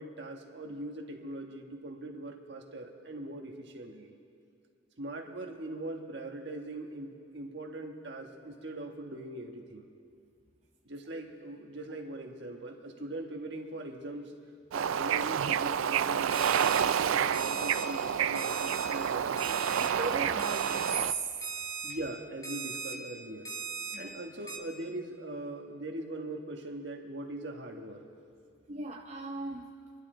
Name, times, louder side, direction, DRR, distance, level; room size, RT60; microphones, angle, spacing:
voice 1, 0.0-4.2 5.0-9.8 10.8-14.3 14.7-19.9 21.8-23.6 24.0-28.1, right 1 dB, 60° right, 2 dB, 1.5 m, -41 dB
Bird / Ocean, 14.7-21.1, right 8 dB, 85° right, 0.4 m, -29 dB
Alarm, 16.3-16.8 17.3-17.8 18.4-18.9 19.4-19.9 20.4-20.9 21.4-21.9 22.4-22.9 23.5-24.0 24.5-24.6, right 4 dB, 20° left, 1.4 m, -38 dB
voice 2, 19.7-21.2 23.9-24.1 28.7-29.7, right 4 dB, 35° right, 0 dB, 0.6 m, -37 dB
26.5 x 11.5 x 3.9 m, 2.3 s
head